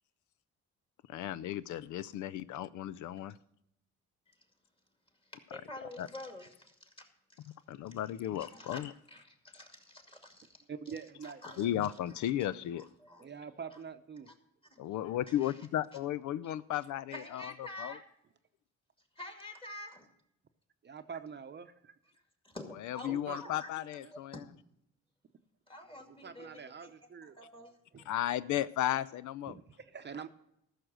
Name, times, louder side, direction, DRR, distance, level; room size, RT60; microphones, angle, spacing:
voice 1, 1.1-3.4 6.0-6.1 7.7-8.9 11.6-12.9 14.8-17.9 22.8-24.4 28.1-29.6, left 12 dB, 75° left, 0.4 m, -35 dB
voice 2, 5.3-7.6 7.8-10.6 11.2-11.7 12.1-13.3 14.3-14.4 14.7-14.8 15.3-15.5 16.4-16.5 17.1-18.0 19.2-20.1 22.4-23.7 24.1-24.4 25.7-26.9 27.2-27.7 28.0-28.1, left 1 dB, 15° left, 2.2 m, -49 dB
voice 3, 10.7-11.7 13.2-14.3 20.8-21.9 23.0-23.6 24.0-24.1 26.2-27.4 27.9-28.0 29.5-30.3, right 6 dB, 35° right, 0.7 m, -45 dB
13.5 x 6.5 x 6.1 m
cardioid pair, 90°, 30 cm